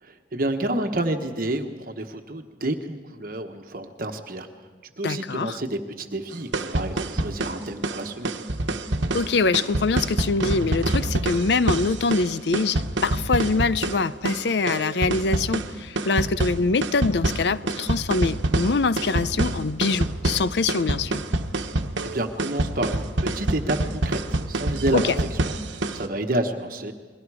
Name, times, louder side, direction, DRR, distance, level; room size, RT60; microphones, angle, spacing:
voice 1, 0.0-4.5 5.0-8.4 22.0-26.9, right 1 dB, 50° right, 1.2 m, -29 dB
voice 2, 5.0-5.6 9.1-21.2 24.9-25.2, left 4 dB, 65° left, 0.5 m, -24 dB
sound 1, 6.3-26.1, right 2 dB, 85° right, 1.1 m, -27 dB
29.0 x 21.5 x 4.9 m
head